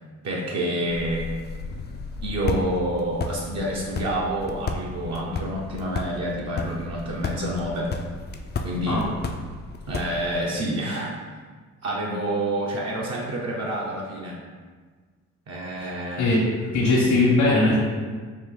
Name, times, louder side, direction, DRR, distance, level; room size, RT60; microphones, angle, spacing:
voice 1, 0.2-1.3 2.2-7.9 8.6-9.1 9.9-11.2 11.8-14.4 15.5-16.4, right 1 dB, 60° right, -4 dB, 0.7 m, -28 dB
sound 1, 0.9-10.4, left 3 dB, 35° left, 0.4 m, -33 dB
voice 2, 16.7-17.8, left 2 dB, 70° left, -7 dB, 1.1 m, -19 dB
4.5 x 2.6 x 3.7 m, 1.5 s
cardioid pair, 90°, 30 cm